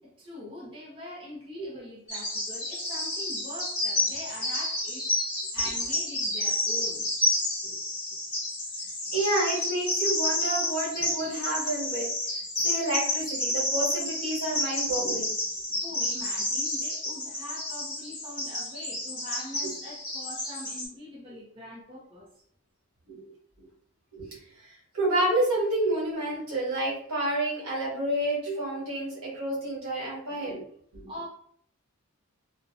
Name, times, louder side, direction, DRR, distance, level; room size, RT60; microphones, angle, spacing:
voice 1, 0.2-5.1 5.5-7.1 15.8-22.3 31.1-31.3, left 1 dB, 25° right, -4 dB, 0.5 m, -43 dB
Bird vocalization bird call bird song, 2.1-20.9, left 1 dB, 20° left, 1.2 m, -30 dB
voice 2, 9.1-12.1 12.6-15.3 23.1-23.3 24.1-24.3 24.6-30.6 30.9-31.1, right 1 dB, 80° right, -5 dB, 1.2 m, -29 dB
2.5 x 2.0 x 2.6 m, 0.63 s
head